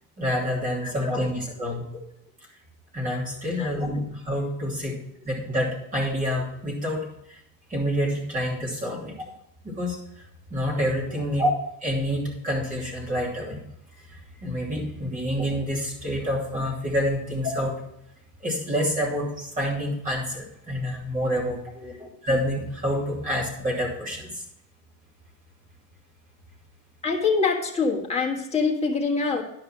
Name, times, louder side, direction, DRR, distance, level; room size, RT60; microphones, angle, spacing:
voice 1, 0.2-1.8 2.9-5.0 5.2-7.0 7.3-7.4 7.7-9.1 9.6-10.0 10.5-11.5 11.8-13.6 14.1-17.7 18.4-21.6 22.0-24.4, equal, 20° right, -3 dB, 2.9 m, -27 dB
voice 2, 0.8-1.3 1.6-1.7 3.6-3.7 21.7-22.0 27.0-29.4, left 4 dB, 15° left, 0 dB, 1.5 m, -25 dB
10.5 x 5.6 x 6.0 m, 0.78 s
cardioid pair, 165°, 40 cm